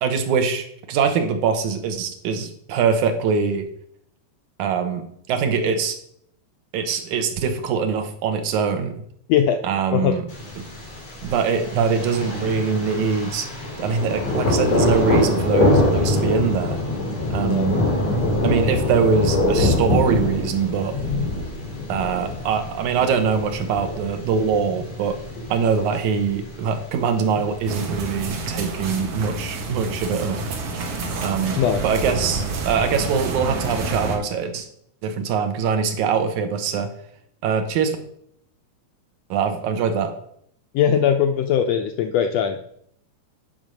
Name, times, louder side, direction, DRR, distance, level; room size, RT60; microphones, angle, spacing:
voice 1, 0.0-3.7 4.6-6.0 6.7-8.9 9.6-10.3 11.2-13.5 13.8-16.8 17.3-17.8 18.4-21.0 21.9-25.2 25.5-30.4 31.2-34.7 35.0-36.9 37.4-38.0 39.3-40.1, right 6 dB, 75° right, 7 dB, 2.4 m, -23 dB
Thunder, 10.3-28.3, left 1 dB, 60° left, 4.4 m, -24 dB
voice 2, 17.4-17.7 31.5-31.8 40.7-42.6, left 9 dB, 80° left, 6 dB, 1.5 m, -20 dB
sound 1, 27.7-34.2, right 3 dB, 60° right, 2.3 m, -28 dB
9.0 x 5.2 x 6.3 m, 0.68 s
omnidirectional pair, 3.5 m